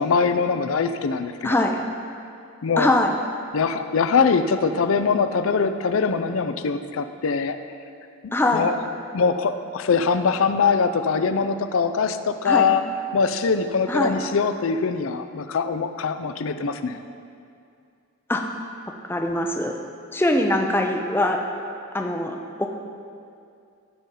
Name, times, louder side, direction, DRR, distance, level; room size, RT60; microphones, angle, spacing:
voice 1, 0.0-1.7 2.6-2.9 3.5-7.6 8.2-8.8 9.1-12.8 13.1-17.0, left 5 dB, 70° left, 9 dB, 0.4 m, -22 dB
voice 2, 1.4-1.8 2.8-3.1 8.3-8.7 12.4-12.7 13.9-14.1 18.3-18.4 19.0-19.7 20.1-21.4 21.9-22.7, left 1 dB, 10° left, 3 dB, 0.5 m, -22 dB
14.5 x 5.7 x 3.7 m, 2.4 s
head